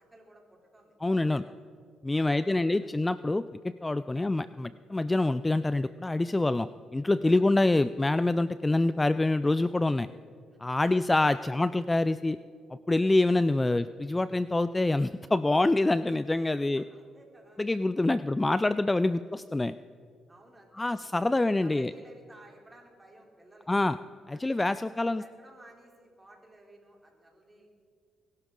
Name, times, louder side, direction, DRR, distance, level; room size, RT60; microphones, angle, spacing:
voice 1, 0.0-1.5 2.1-2.9 4.1-4.3 7.2-7.5 10.8-10.9 11.4-11.6 13.6-13.8 16.7-17.6 18.1-18.3 19.1-19.2 20.3-23.7 24.3-24.4 24.8-27.7, right 1 dB, 20° right, 0 dB, 3.4 m, -56 dB
voice 2, 1.0-1.4 2.0-10.1 10.6-12.4 12.9-16.8 17.6-19.8 20.7-21.9 23.7-24.0 24.3-25.2, left 2 dB, 15° left, 14 dB, 0.3 m, -26 dB
22.0 x 12.0 x 3.8 m, 2.3 s
cardioid pair, 90°, 0 cm